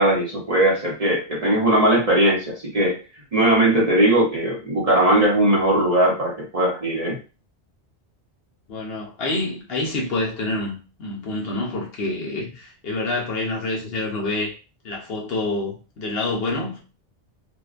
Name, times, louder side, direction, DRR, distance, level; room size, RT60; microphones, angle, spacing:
voice 1, 0.0-3.0 3.3-7.2, right 1 dB, 40° right, 0.7 m, -19 dB
voice 2, 8.7-14.5 14.8-16.8, left 2 dB, 65° left, 0.9 m, -27 dB
2.5 x 2.1 x 2.4 m
omnidirectional pair, 1.1 m